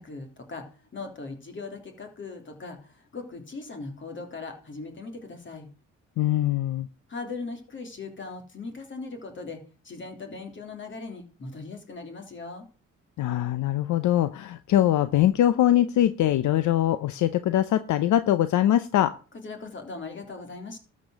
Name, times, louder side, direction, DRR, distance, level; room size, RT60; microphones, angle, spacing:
voice 1, 0.0-5.7 7.1-12.6 19.4-20.8, left 3 dB, 40° left, 5 dB, 3.3 m, -39 dB
voice 2, 6.2-6.9 13.2-19.1, left 12 dB, 75° left, 13 dB, 0.7 m, -22 dB
13.0 x 5.4 x 6.5 m, 0.36 s
cardioid pair, 90°, 30 cm